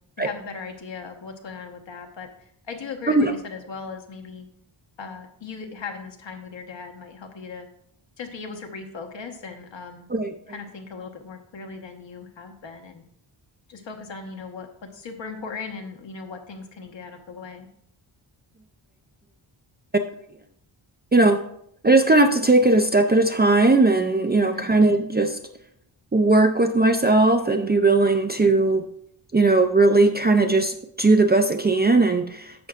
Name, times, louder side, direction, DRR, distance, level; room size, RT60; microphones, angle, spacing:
voice 1, 0.2-2.3 2.7-4.4 5.0-7.7 8.2-10.0 10.5-13.0 13.7-17.7 24.5-24.7, left 4 dB, 60° left, 4 dB, 1.3 m, -38 dB
voice 2, 21.1-21.4 21.8-25.4 26.1-28.8 29.3-32.7, right 2 dB, 20° right, 5 dB, 0.4 m, -18 dB
11.0 x 7.6 x 2.4 m, 0.71 s
wide cardioid pair, 115°, 49 cm